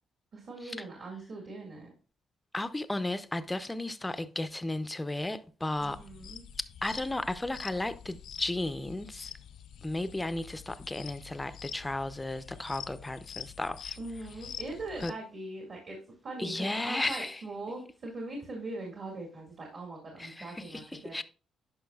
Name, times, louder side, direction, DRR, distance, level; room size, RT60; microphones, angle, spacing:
voice 1, 0.3-1.9 5.8-6.4 14.0-21.2, right 2 dB, 50° right, 2.0 m, -41 dB
voice 2, 2.5-6.0 6.8-9.3 9.8-14.0 15.0-15.1 16.4-17.4 20.2-21.2, left 2 dB, 15° left, 0.5 m, -34 dB
sound 1, 5.8-15.1, left 9 dB, 70° left, 0.5 m, -46 dB
10.5 x 5.3 x 2.3 m
cardioid pair, 90°, 0 cm